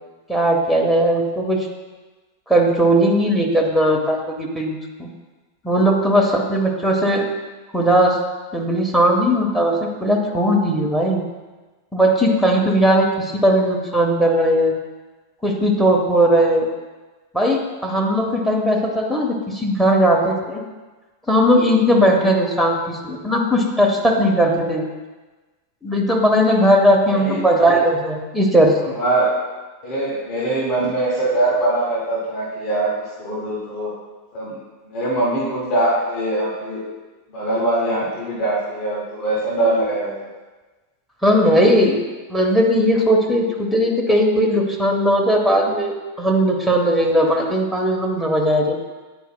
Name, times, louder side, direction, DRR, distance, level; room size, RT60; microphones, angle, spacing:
voice 1, 0.3-1.6 2.5-5.1 5.6-7.2 7.7-8.2 8.5-11.2 11.9-14.7 15.4-16.7 17.3-20.6 21.3-24.9 25.8-29.0 41.2-42.0 42.3-48.8, equal, 5° left, 1 dB, 0.8 m, -18 dB
voice 2, 27.1-27.4 28.9-29.3 29.8-32.9 33.2-33.9 34.3-34.6 34.8-36.8 37.3-40.1, right 2 dB, 40° left, -5 dB, 1.5 m, -22 dB
9.3 x 4.7 x 2.2 m, 1.2 s
figure-of-eight pair, 90°, 0 cm